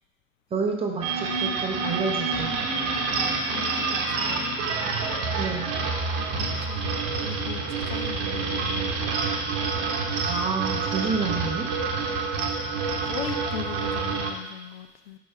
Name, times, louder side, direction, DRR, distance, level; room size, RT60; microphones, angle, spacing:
voice 1, 0.5-2.5 5.4-5.7 10.2-11.7, right 4 dB, 15° right, 2 dB, 0.7 m, -29 dB
sound 1, 1.0-14.3, right 4 dB, 45° right, 1.0 m, -27 dB
voice 2, 3.5-4.6 6.0-8.9 12.1-12.4 13.0-15.2, left 10 dB, 50° left, 7 dB, 0.5 m, -39 dB
5.5 x 5.1 x 4.4 m, 0.97 s
figure-of-eight pair, 80°, 40 cm